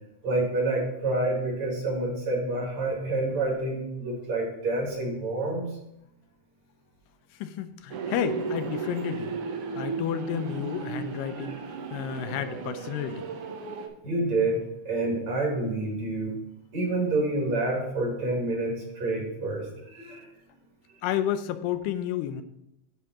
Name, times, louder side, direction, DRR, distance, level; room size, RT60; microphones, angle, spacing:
voice 1, 0.2-5.7 11.4-11.6 14.0-16.4 16.7-20.3, right 2 dB, 55° right, -2 dB, 3.0 m, -28 dB
voice 2, 7.4-9.4 9.8-11.6 11.9-13.3 21.0-22.4, left 10 dB, 90° left, 10 dB, 2.2 m, -31 dB
sound 1, 7.9-13.9, right 5 dB, 90° right, 1.2 m, -35 dB
9.7 x 3.4 x 5.9 m, 0.83 s
omnidirectional pair, 3.8 m